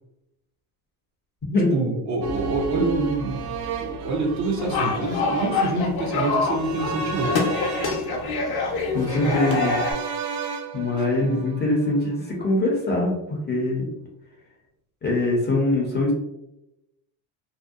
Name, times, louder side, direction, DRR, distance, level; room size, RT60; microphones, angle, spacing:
voice 1, 1.7-3.4 3.8-7.4 9.2-9.4 11.2-11.5, right 3 dB, 40° right, 0 dB, 0.5 m, -26 dB
sound 1, 2.2-12.3 12.6-12.7, right 4 dB, 85° right, 0.6 m, -33 dB
sound 2, 4.6-9.9, left 3 dB, 55° left, 0.7 m, -26 dB
voice 2, 8.9-9.7 10.7-13.8 15.0-16.1, left 2 dB, 25° left, -1 dB, 0.6 m, -23 dB
2.7 x 2.0 x 2.3 m, 0.88 s
cardioid pair, 110°, 46 cm